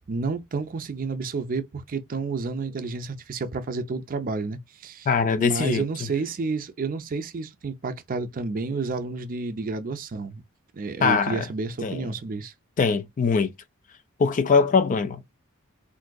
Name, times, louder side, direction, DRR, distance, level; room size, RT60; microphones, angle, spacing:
voice 1, 0.1-5.1 5.4-10.4 10.7-12.5, right 4 dB, 40° right, 0.4 m, -30 dB
voice 2, 5.1-5.8 11.0-11.4 11.8-12.0 12.8-13.5 14.2-15.3, left 5 dB, 35° left, 0.4 m, -22 dB
3.6 x 2.6 x 2.2 m
head